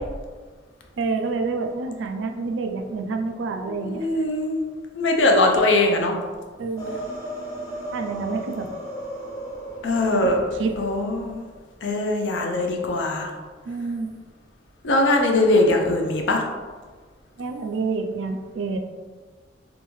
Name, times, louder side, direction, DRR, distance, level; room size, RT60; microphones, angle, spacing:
voice 1, 1.0-4.2 6.6-7.0 7.9-8.7 10.2-10.7 13.7-14.1 17.4-18.8, right 4 dB, 85° right, 5 dB, 0.4 m, -28 dB
voice 2, 3.8-4.6 4.9-6.1 9.8-10.4 10.8-11.4 11.8-13.3 14.8-16.5, left 2 dB, 80° left, 2 dB, 0.5 m, -21 dB
sound 1, 6.8-11.6, right 1 dB, 20° left, 0.8 m, -36 dB
3.5 x 2.6 x 3.0 m, 1.4 s
head